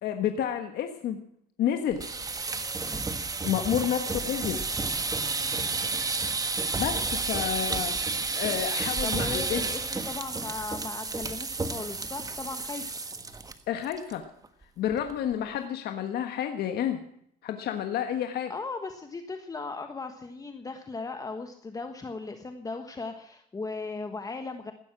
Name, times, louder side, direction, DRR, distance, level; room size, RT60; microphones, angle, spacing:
voice 1, 0.0-1.2 1.6-2.1 3.4-4.6 6.8-8.0 8.3-9.6 13.7-14.2 14.8-17.0 17.4-18.5, left 9 dB, 70° left, 6 dB, 1.5 m, -30 dB
sound 1, 1.9-13.5 13.8-14.1 14.4-14.5 14.9-15.3, right 3 dB, 20° right, 1.5 m, -31 dB
voice 2, 9.0-12.9 18.5-24.7, left 3 dB, 20° left, 7 dB, 1.3 m, -37 dB
16.5 x 12.5 x 6.1 m, 0.71 s
cardioid pair, 110°, 17 cm